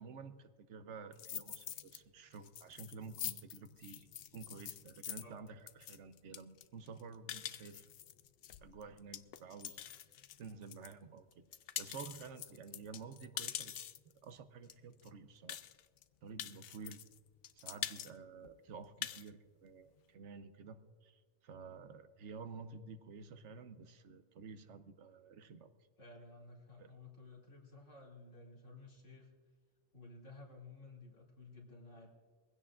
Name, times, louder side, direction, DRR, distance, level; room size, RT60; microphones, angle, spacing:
voice 1, 0.0-7.8 8.6-9.8 10.4-11.4 11.8-15.6 16.2-17.0 17.6-25.7 26.8-26.9, right 5 dB, 80° right, 10 dB, 1.1 m, -51 dB
sound 1, 1.1-2.0 2.3-10.9 11.3-14.1 14.7-14.8 15.0-15.1 15.5-16.0 16.4-17.2 17.4-18.1 18.4-18.5 18.8-19.3, left 10 dB, 65° left, 0.7 m, -45 dB
voice 2, 26.0-29.3 29.9-32.1, left 3 dB, 85° left, -2 dB, 2.9 m, -55 dB
22.5 x 16.0 x 2.5 m, 1.4 s
omnidirectional pair, 1.2 m